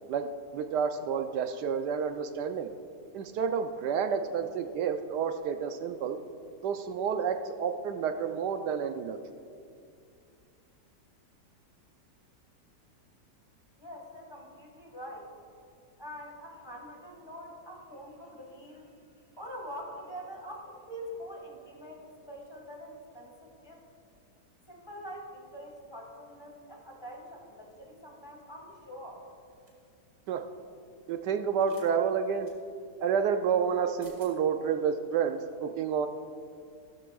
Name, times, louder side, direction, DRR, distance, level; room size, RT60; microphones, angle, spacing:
voice 1, 0.5-2.7 3.1-6.2 6.6-9.2 30.3-30.4 31.1-32.5 33.0-36.1, right 7 dB, 75° right, 7 dB, 1.1 m, -29 dB
voice 2, 13.8-15.3 16.0-23.8 24.7-29.3, equal, 15° left, -1 dB, 1.6 m, -45 dB
sound 1, 29.7-29.9 31.6-31.9 32.4-32.6 33.7-33.8 34.0-34.3, right 3 dB, 50° right, 2.3 m, -56 dB
15.5 x 13.0 x 2.3 m, 2.4 s
omnidirectional pair, 1.9 m